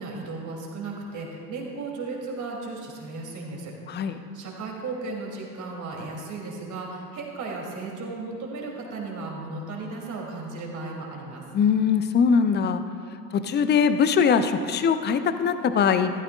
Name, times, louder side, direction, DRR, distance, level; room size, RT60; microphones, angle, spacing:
voice 1, 0.0-11.4, right 3 dB, 35° right, -1 dB, 3.0 m, -35 dB
voice 2, 11.5-12.8 13.3-16.1, left 6 dB, 20° left, 10 dB, 0.6 m, -21 dB
15.0 x 13.5 x 2.4 m, 2.3 s
figure-of-eight pair, 70°, 49 cm